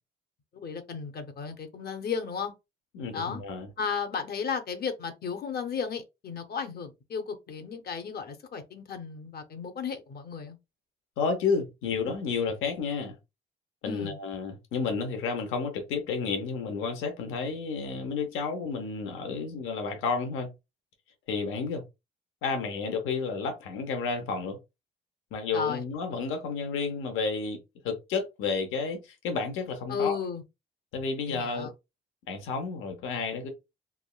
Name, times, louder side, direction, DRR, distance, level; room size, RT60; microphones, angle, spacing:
voice 1, 0.5-2.5 3.1-3.4 3.8-10.6 13.8-14.2 25.5-25.8 29.9-30.4 31.3-31.7, left 6 dB, 55° left, 0.7 m, -34 dB
voice 2, 2.9-3.7 11.2-13.2 13.8-20.5 21.3-21.8 22.4-24.6 25.3-27.6 27.8-30.2 30.9-31.7 32.3-33.5, left 5 dB, 90° left, 0.8 m, -31 dB
3.4 x 2.1 x 2.3 m
cardioid pair, 90°, 20 cm